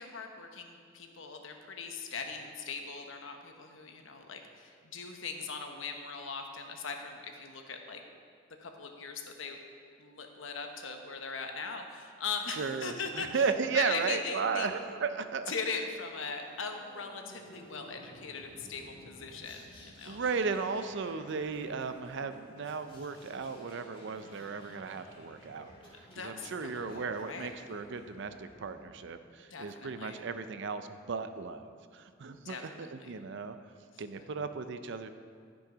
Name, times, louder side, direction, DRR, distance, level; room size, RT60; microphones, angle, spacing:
voice 1, 0.0-8.0 8.6-9.6 10.0-13.4 13.7-14.7 15.5-20.2 26.1-27.5 29.5-30.2 32.4-33.2, left 5 dB, 75° left, 4 dB, 1.0 m, -40 dB
voice 2, 12.5-15.5 20.0-25.7 26.0-33.6 34.0-35.1, right 5 dB, 65° right, 10 dB, 0.5 m, -35 dB
sound 1, 16.3-29.1, equal, 25° left, 2.0 m, -55 dB
11.5 x 6.3 x 5.0 m, 2.1 s
head